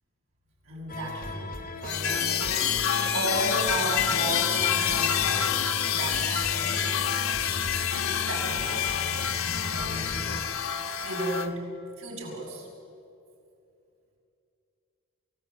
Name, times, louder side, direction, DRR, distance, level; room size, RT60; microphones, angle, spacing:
voice 1, 0.6-1.4 1.8-2.8 3.1-5.6 5.9-6.8 7.9-8.9 9.4-10.7 11.0-11.6 12.0-12.7, right 1 dB, 75° right, -2 dB, 6.2 m, -34 dB
sound 1, 0.9-10.4, left 1 dB, 40° left, 2.4 m, -37 dB
sound 2, 1.8-11.5, left 9 dB, 75° left, 1.3 m, -27 dB
29.0 x 18.5 x 8.1 m, 2.6 s
head